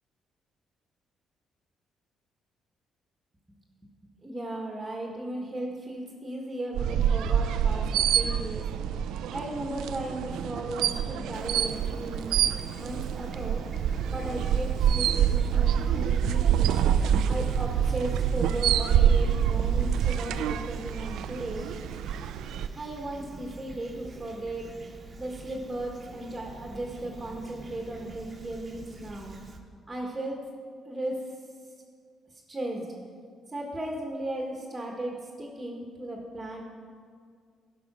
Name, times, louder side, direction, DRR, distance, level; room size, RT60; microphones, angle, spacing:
voice 1, 4.2-7.9 8.1-8.6 9.3-12.3 12.8-13.6 14.1-16.8 17.3-21.6 22.7-24.7 25.2-29.3 29.9-30.4 30.8-31.4 32.3-32.9 33.5-36.6, right 1 dB, 15° right, 0 dB, 1.3 m, -36 dB
sound 1, 6.7-22.7, right 9 dB, 85° right, 0.3 m, -26 dB
Fowl / Chirp tweet, 11.3-29.6, right 3 dB, 35° right, 1.0 m, -45 dB
11.0 x 5.1 x 6.0 m, 2.1 s
cardioid pair, 90°, 0 cm